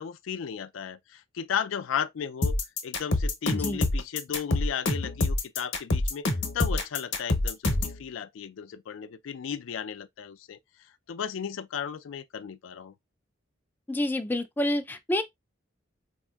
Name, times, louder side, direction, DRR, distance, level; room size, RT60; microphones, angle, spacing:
voice 1, 0.0-2.6 2.8-6.3 6.5-10.6 11.1-12.9, left 8 dB, 80° left, 0.4 m, -35 dB
sound 1, 2.4-8.0, left 2 dB, 65° left, 0.8 m, -26 dB
voice 2, 3.5-3.8 13.9-15.2, left 1 dB, 10° left, 0.3 m, -28 dB
4.1 x 2.7 x 2.3 m
head